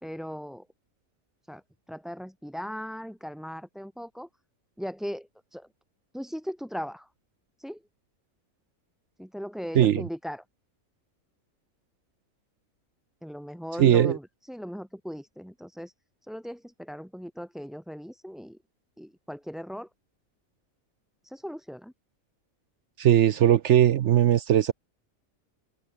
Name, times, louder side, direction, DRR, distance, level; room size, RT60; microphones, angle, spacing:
voice 1, 0.0-0.7 1.5-4.3 4.8-5.7 6.1-7.1 7.6-7.8 9.2-10.4 13.2-15.9 16.2-18.6 19.0-19.9 21.2-21.9, equal, ahead, 2.3 m, -38 dB
voice 2, 13.8-14.2 23.0-24.7, right 11 dB, 65° right, 0.9 m, -19 dB
omnidirectional pair, 1.4 m